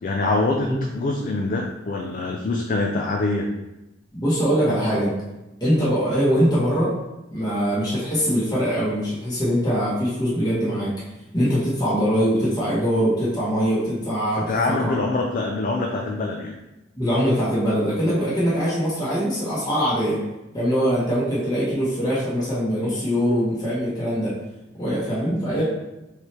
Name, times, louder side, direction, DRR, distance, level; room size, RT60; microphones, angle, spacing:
voice 1, 0.0-3.5 14.5-16.6 25.6-25.7, left 2 dB, 50° left, 1 dB, 0.4 m, -24 dB
voice 2, 4.1-5.1 5.6-6.9 7.3-10.9 11.3-15.0 16.9-20.2 20.5-24.4 24.8-25.6, equal, 20° left, -9 dB, 1.3 m, -22 dB
4.6 x 3.3 x 2.9 m, 0.96 s
head